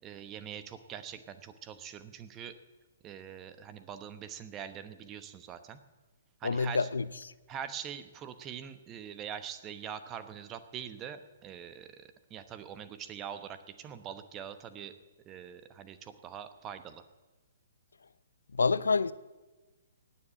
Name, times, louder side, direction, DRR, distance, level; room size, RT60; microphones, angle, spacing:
voice 1, 0.0-2.5 3.0-5.8 6.4-6.9 7.5-14.9 15.3-17.0, right 8 dB, 25° right, 1.0 m, -43 dB
voice 2, 6.4-7.1 18.5-19.1, left 4 dB, 75° left, 0.6 m, -27 dB
18.5 x 7.4 x 7.7 m
figure-of-eight pair, 125°, 0 cm